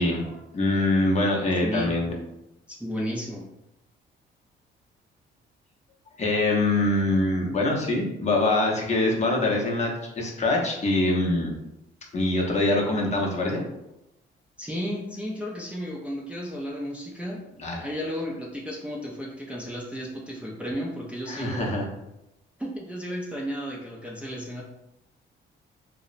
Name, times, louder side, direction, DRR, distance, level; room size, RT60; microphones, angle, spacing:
voice 1, 0.0-2.1 6.2-11.5 12.1-13.6 17.6-17.9 21.3-21.9, left 2 dB, 35° left, -1 dB, 0.6 m, -24 dB
voice 2, 2.7-3.5 14.6-17.4 17.8-21.7 22.6-24.6, equal, 5° right, -4 dB, 0.4 m, -33 dB
2.8 x 2.0 x 2.5 m, 0.88 s
cardioid pair, 90°, 20 cm